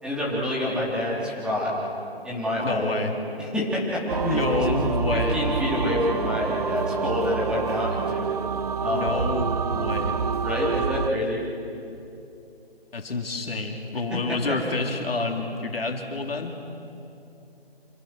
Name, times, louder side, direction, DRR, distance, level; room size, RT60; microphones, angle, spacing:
voice 1, 0.0-1.8 2.2-2.9 3.4-4.7 5.1-8.3 8.8-9.1 10.4-11.4 14.1-14.4, left 1 dB, 5° right, -6 dB, 3.7 m, -27 dB
voice 2, 2.6-3.1 4.2-5.4 8.9-10.2 12.9-16.5, left 3 dB, 65° left, 3 dB, 3.0 m, -28 dB
sound 1, 4.1-11.1, right 5 dB, 40° right, 0.6 m, -27 dB
29.0 x 27.0 x 6.2 m, 2.8 s
figure-of-eight pair, 150°, 32 cm